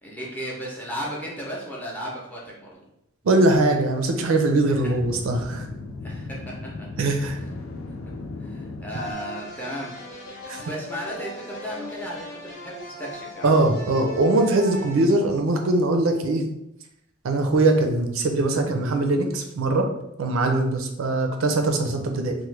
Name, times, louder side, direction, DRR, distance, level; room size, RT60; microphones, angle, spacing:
voice 1, 0.0-2.8 4.7-4.8 6.0-6.9 8.4-9.9 10.6-13.5, equal, 10° left, -4 dB, 0.5 m, -35 dB
voice 2, 3.2-5.7 7.0-7.4 10.5-10.6 13.4-16.4 17.2-19.9 20.2-22.3, right 2 dB, 75° right, 4 dB, 0.4 m, -21 dB
sound 1, 4.1-9.1, left 3 dB, 85° left, 0.4 m, -37 dB
sound 2, 8.9-15.9, left 2 dB, 55° left, 0.9 m, -38 dB
3.0 x 2.1 x 3.2 m, 0.81 s
head